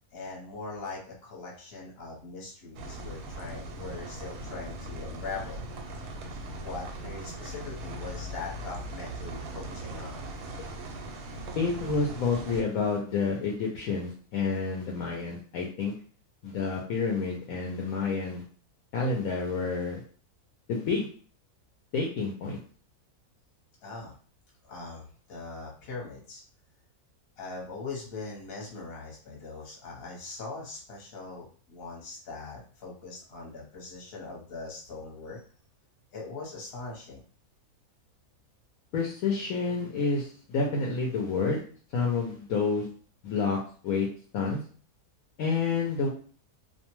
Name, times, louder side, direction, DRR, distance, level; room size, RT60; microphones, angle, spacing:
voice 1, 0.1-5.6 6.5-10.3 23.8-24.1 24.6-26.4 27.4-35.4 36.1-37.2, left 3 dB, 45° left, -3 dB, 1.0 m, -41 dB
sound 1, 2.7-12.6, right 1 dB, 85° right, 1.1 m, -39 dB
voice 2, 11.6-15.9 16.4-18.4 18.9-20.0 20.7-21.1 21.9-22.6 38.9-41.6 41.9-42.9 43.2-43.6 43.8-44.1 44.3-44.6 45.4-46.1, left 4 dB, 70° left, -1 dB, 1.0 m, -29 dB
2.6 x 2.2 x 2.9 m, 0.42 s
omnidirectional pair, 1.6 m